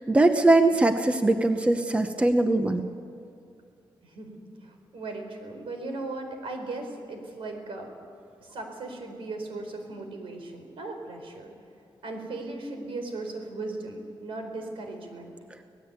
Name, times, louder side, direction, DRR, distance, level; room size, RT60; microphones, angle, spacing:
voice 1, 0.0-2.9, right 2 dB, 15° right, 7 dB, 0.8 m, -21 dB
voice 2, 4.0-7.9 8.4-11.5 12.0-15.3, right 2 dB, 75° right, 4 dB, 4.6 m, -37 dB
25.5 x 18.0 x 8.2 m, 2.5 s
wide cardioid pair, 175°, 9 cm